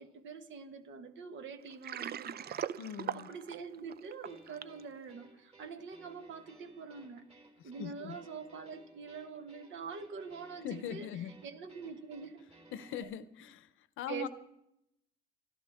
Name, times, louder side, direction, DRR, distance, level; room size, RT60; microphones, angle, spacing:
voice 1, 0.0-2.6 3.1-7.2 7.6-11.1 11.4-12.4 14.1-14.3, right 5 dB, 75° right, 1.4 m, -45 dB
Water, 1.6-4.8, right 9 dB, 50° right, 0.5 m, -40 dB
voice 2, 2.8-3.3 7.6-8.2 10.6-11.4 12.7-14.3, left 8 dB, 85° left, 0.8 m, -41 dB
sound 1, 4.2-13.0, right 2 dB, 30° right, 3.3 m, -60 dB
25.5 x 12.5 x 3.6 m
cardioid pair, 90°, 20 cm